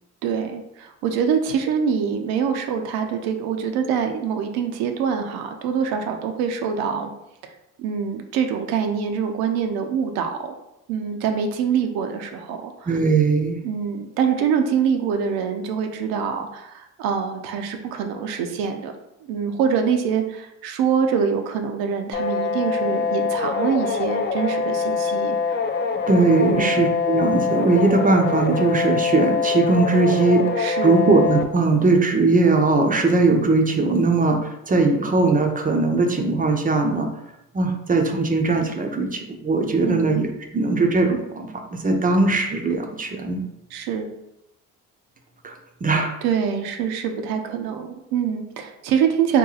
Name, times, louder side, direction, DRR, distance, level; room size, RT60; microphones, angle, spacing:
voice 1, 0.2-7.1 7.4-7.5 7.8-10.5 10.9-13.0 13.6-18.9 19.3-25.6 26.5-26.8 30.6-31.0 39.8-40.1 43.7-44.1 46.2-49.4, right 7 dB, 75° right, 5 dB, 0.6 m, -24 dB
voice 2, 12.9-13.6 26.1-37.1 37.5-40.3 40.5-43.4 45.4-45.5 45.8-46.1, right 3 dB, 25° right, 3 dB, 0.5 m, -20 dB
sound 1, 22.1-31.4, left 5 dB, 30° left, 0.4 m, -24 dB
2.8 x 2.2 x 3.9 m, 0.86 s
supercardioid pair, 75°, 36 cm